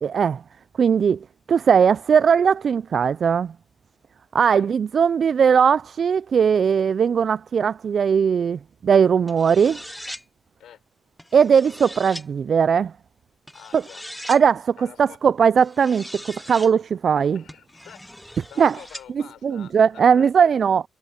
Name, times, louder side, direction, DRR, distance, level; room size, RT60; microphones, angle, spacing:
voice 1, 0.0-0.4 0.8-3.5 4.3-9.8 11.3-12.9 13.7-13.8 14.3-17.4 18.6-18.8 19.4-20.8, right 7 dB, 60° right, 0.3 m, -19 dB
sound 1, 9.3-10.2 11.2-12.3 13.5-14.4 15.6-16.7 17.5-19.1, equal, 5° left, 0.9 m, -40 dB
voice 2, 13.5-14.0 14.8-15.2 17.3-18.1 18.5-20.6, left 10 dB, 85° left, 6.0 m, -46 dB
cardioid pair, 65°, 0 cm